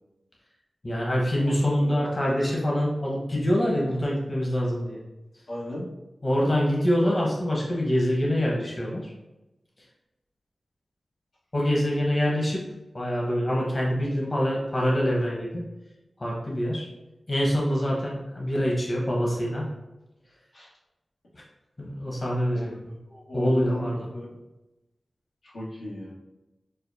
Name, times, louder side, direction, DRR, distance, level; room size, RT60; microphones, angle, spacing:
voice 1, 0.8-5.0 6.2-9.1 11.5-12.6 12.9-15.6 16.2-16.8 17.3-19.6 21.8-22.9 23.3-24.0, equal, 40° left, -3 dB, 1.1 m, -25 dB
voice 2, 1.4-2.5 5.5-5.9 20.5-20.7 22.5-22.8 23.1-24.3 25.4-26.1, left 1 dB, 90° left, -9 dB, 1.5 m, -37 dB
6.6 x 2.2 x 2.7 m, 1.0 s
cardioid pair, 50°, 0 cm